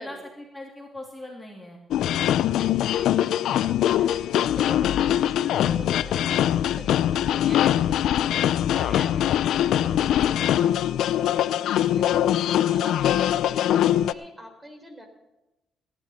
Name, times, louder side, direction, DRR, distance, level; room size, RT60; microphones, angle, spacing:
voice 1, 0.0-1.8 9.9-10.5, left 1 dB, 10° left, -1 dB, 3.0 m, -41 dB
sound 1, 1.9-14.1, left 11 dB, 80° left, 0.5 m, -22 dB
voice 2, 2.2-11.1 11.4-15.1, right 1 dB, 15° right, 5 dB, 3.9 m, -44 dB
17.5 x 11.5 x 4.3 m, 0.98 s
cardioid pair, 90°, 0 cm